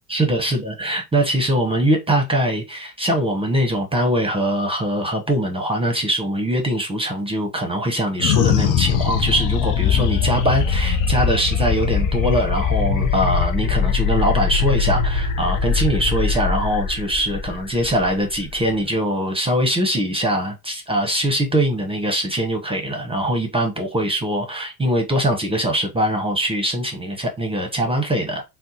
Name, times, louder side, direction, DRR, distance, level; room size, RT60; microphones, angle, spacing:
voice 1, 0.1-28.4, right 1 dB, 15° right, 0.8 m, -22 dB
Spaceship Engine Landing, 8.2-18.9, left 6 dB, 45° left, 0.6 m, -21 dB
2.7 x 2.1 x 3.8 m
supercardioid pair, 85°, 43 cm